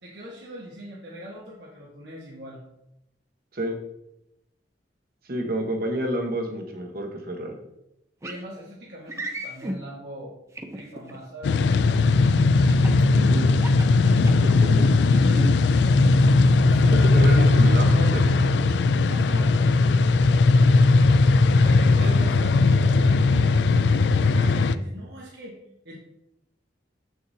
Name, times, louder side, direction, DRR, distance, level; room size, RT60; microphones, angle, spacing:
voice 1, 0.0-2.6 8.2-10.3 10.7-11.6 16.6-17.3 19.1-20.0 21.5-23.5 24.2-25.6 25.8-26.0, equal, 70° right, -4 dB, 1.4 m, -40 dB
voice 2, 5.3-7.6 13.1-13.5 14.4-14.9 16.8-18.8, right 1 dB, 55° right, 3 dB, 1.2 m, -30 dB
sound 1, 8.2-8.4 9.1-9.8 10.5-11.2 12.7-13.0 13.5-14.6 15.1-15.5, right 1 dB, 15° right, 0.6 m, -34 dB
sound 2, 11.4-24.8, left 3 dB, 75° left, 0.3 m, -18 dB
7.8 x 6.5 x 2.8 m, 0.83 s
head